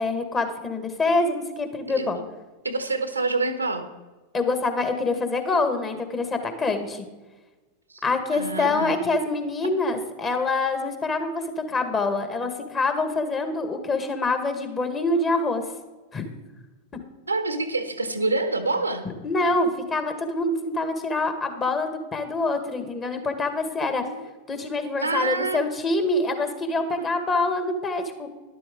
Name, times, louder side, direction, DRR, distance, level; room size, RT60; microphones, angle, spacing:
voice 1, 0.0-2.2 4.3-7.0 8.0-11.4 11.7-15.6 16.1-16.2 19.2-24.0 24.5-28.3, left 3 dB, 20° left, 7 dB, 1.7 m, -25 dB
voice 2, 2.6-3.9 7.9-8.0 8.3-8.9 17.3-19.1 24.0-24.2 25.0-25.6, right 3 dB, 80° right, 9 dB, 1.1 m, -26 dB
12.5 x 11.5 x 3.8 m, 1.2 s
figure-of-eight pair, 90°, 0 cm